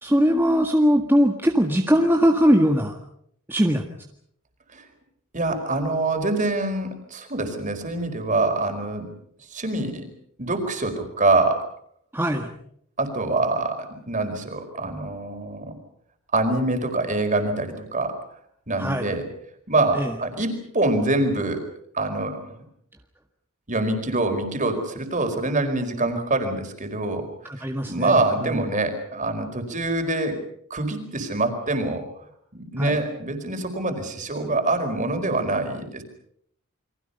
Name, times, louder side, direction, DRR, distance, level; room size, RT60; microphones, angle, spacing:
voice 1, 0.0-2.9 3.5-3.8 12.1-12.5 18.8-19.1 19.9-20.1 27.4-28.6 32.8-33.0, equal, 10° right, 2 dB, 1.8 m, -21 dB
voice 2, 5.3-9.1 9.5-10.1 10.4-11.7 13.0-15.7 16.3-18.2 18.7-19.2 19.7-21.6 21.9-22.4 23.7-27.3 27.6-30.4 30.7-32.0 32.5-36.0, right 2 dB, 35° right, 6 dB, 4.7 m, -25 dB
29.5 x 24.0 x 5.6 m, 0.68 s
head